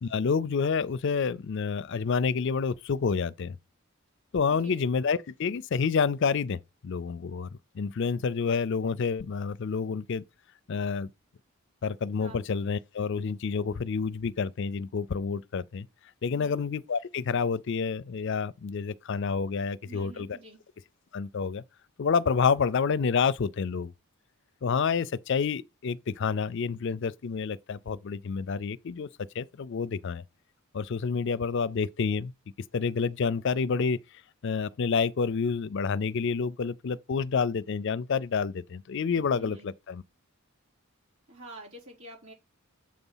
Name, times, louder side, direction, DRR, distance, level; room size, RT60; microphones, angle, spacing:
voice 1, 0.0-3.6 4.3-7.5 7.7-10.2 10.7-11.1 11.8-15.9 16.2-20.4 21.1-21.6 22.0-23.9 24.6-29.1 29.3-30.2 30.7-32.3 32.7-34.0 34.4-40.0, left 5 dB, 55° left, 0.4 m, -28 dB
voice 2, 4.5-4.9 12.2-12.4 16.3-16.6 19.8-20.6 39.4-39.7 41.3-42.3, right 1 dB, 80° right, 4.6 m, -47 dB
7.6 x 4.1 x 5.5 m
head